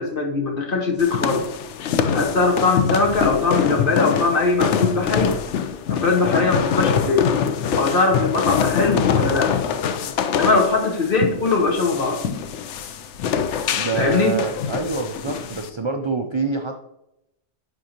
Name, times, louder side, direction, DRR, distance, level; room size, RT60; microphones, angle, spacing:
voice 1, 0.0-1.5 2.1-5.4 5.9-7.3 7.8-9.6 10.3-12.2 13.9-14.4, left 3 dB, 50° left, 0 dB, 1.4 m, -21 dB
sound 1, 1.0-15.7, left 7 dB, 85° left, 0.9 m, -24 dB
voice 2, 13.7-16.8, right 4 dB, 40° right, 4 dB, 0.4 m, -26 dB
10.0 x 3.7 x 2.9 m, 0.84 s
omnidirectional pair, 1.2 m